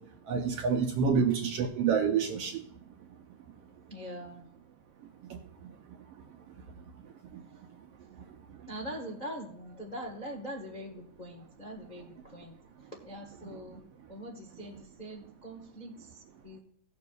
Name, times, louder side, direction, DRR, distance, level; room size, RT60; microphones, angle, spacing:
voice 1, 0.3-2.6 5.3-5.4, right 6 dB, 70° right, 3 dB, 1.5 m, -27 dB
voice 2, 3.9-4.4 8.7-12.6 12.9-13.8 14.1-16.2 16.4-16.6, equal, 50° left, -1 dB, 0.5 m, -43 dB
18.5 x 6.7 x 2.4 m, 0.64 s
omnidirectional pair, 3.5 m